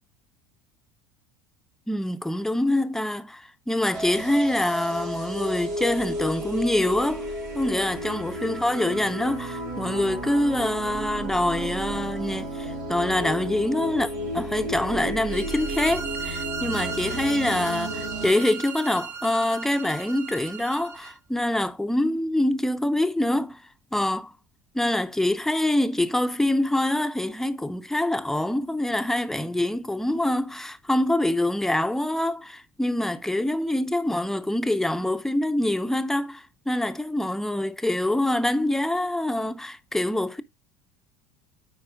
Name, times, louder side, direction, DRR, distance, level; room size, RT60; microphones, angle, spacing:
voice 1, 1.9-7.3 7.5-23.6 23.9-24.3 24.7-40.4, left 1 dB, 5° left, 0.6 m, -25 dB
sound 1, 3.9-18.3, equal, 75° right, 3.4 m, -33 dB
sound 2, 15.3-21.1, right 6 dB, 45° right, 1.3 m, -36 dB
9.6 x 4.2 x 3.7 m
hypercardioid pair, 80°, 10 cm